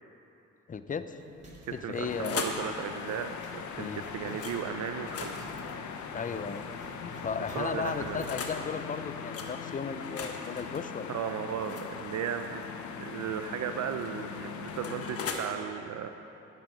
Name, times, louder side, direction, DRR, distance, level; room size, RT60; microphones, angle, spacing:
voice 1, 0.7-1.2 1.7-2.5 3.8-4.0 6.1-6.7 7.0-11.1, left 6 dB, 25° left, 10 dB, 0.6 m, -35 dB
Zipper (clothing), 1.1-8.3, right 2 dB, 25° right, 2.3 m, -50 dB
sound 1, 1.7-2.7 4.4-4.6 5.0-6.9 7.6-8.6 9.3-9.5 10.0-12.7 13.8-15.4, left 5 dB, 50° left, 1.3 m, -40 dB
voice 2, 1.8-5.5 7.5-8.2 11.1-12.6 13.0-16.1, right 8 dB, 65° right, 7 dB, 0.6 m, -36 dB
sound 2, 2.0-15.3, left 6 dB, 70° left, 0.9 m, -41 dB
11.0 x 10.5 x 5.1 m, 2.9 s
cardioid pair, 90°, 30 cm